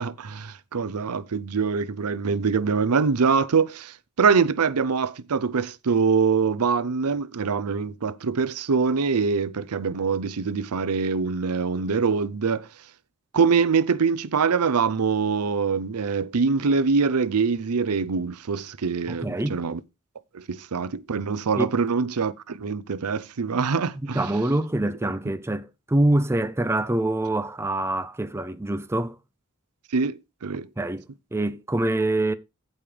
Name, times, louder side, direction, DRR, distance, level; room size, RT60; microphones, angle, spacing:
voice 1, 0.0-12.7 13.3-19.8 20.3-24.3 29.9-30.7, right 5 dB, 85° right, 0.6 m, -24 dB
voice 2, 19.1-19.6 21.6-21.7 24.1-29.2 30.8-32.3, right 1 dB, 10° right, 0.5 m, -25 dB
15.5 x 5.4 x 3.3 m
head